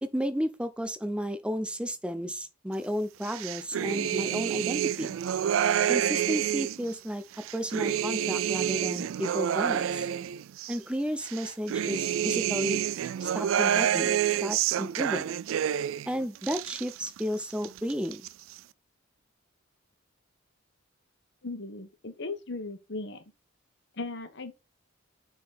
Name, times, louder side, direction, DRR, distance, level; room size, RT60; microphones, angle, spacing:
voice 1, 0.0-5.2 5.9-7.2 7.5-10.1 10.7-12.8 13.2-15.3 16.1-18.2, equal, 5° right, 0.6 m, -33 dB
sound 1, 3.2-6.9 7.3-10.8 11.2-16.1 16.3-17.2 17.5-18.3, right 9 dB, 70° right, 0.3 m, -28 dB
voice 2, 21.4-23.2 23.9-24.5, left 3 dB, 55° left, 1.2 m, -37 dB
6.5 x 3.9 x 4.2 m
head